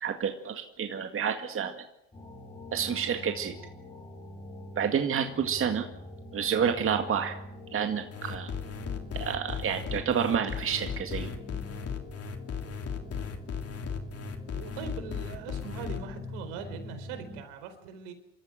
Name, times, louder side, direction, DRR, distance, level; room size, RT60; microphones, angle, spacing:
voice 1, 0.0-1.7 2.7-3.5 4.8-5.9 6.3-7.4 7.7-8.5 9.1-11.3, right 7 dB, 35° right, 5 dB, 2.0 m, -29 dB
sound 1, 2.1-17.4, left 2 dB, 15° left, 6.9 m, -44 dB
sound 2, 8.1-16.0, left 7 dB, 40° left, 3.1 m, -36 dB
voice 2, 14.5-18.1, right 7 dB, 70° right, 8 dB, 4.5 m, -41 dB
26.5 x 13.5 x 9.1 m, 0.86 s
supercardioid pair, 90°, 38 cm